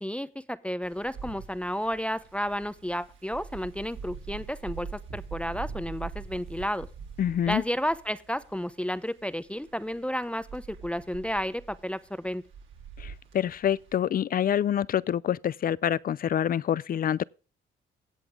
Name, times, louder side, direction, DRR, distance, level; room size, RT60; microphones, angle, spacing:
voice 1, 0.0-6.9 7.5-12.4, equal, 5° left, 0.7 m, -32 dB
Wind, 0.8-13.9, right 5 dB, 75° right, 3.5 m, -43 dB
voice 2, 7.2-7.6 13.0-17.2, left 10 dB, 45° left, 0.5 m, -26 dB
16.5 x 7.1 x 3.6 m
cardioid pair, 90°, 20 cm